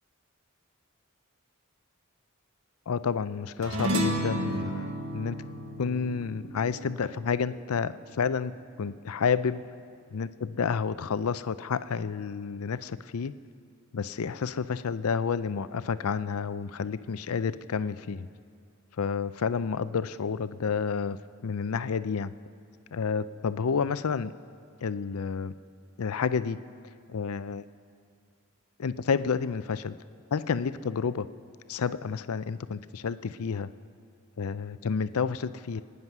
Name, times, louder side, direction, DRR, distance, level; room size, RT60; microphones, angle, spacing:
voice 1, 2.9-5.4 5.8-8.5 8.8-9.6 10.1-13.3 13.9-18.3 19.0-21.2 21.4-22.3 22.9-24.3 24.8-25.5 26.0-26.6 27.1-27.6 28.8-29.9 30.3-31.3 31.7-33.7 34.4-35.8, left 6 dB, 90° left, 14 dB, 0.5 m, -30 dB
sound 1, 3.6-8.3, equal, 65° right, 1.7 m, -32 dB
25.0 x 9.6 x 6.0 m, 2.3 s
head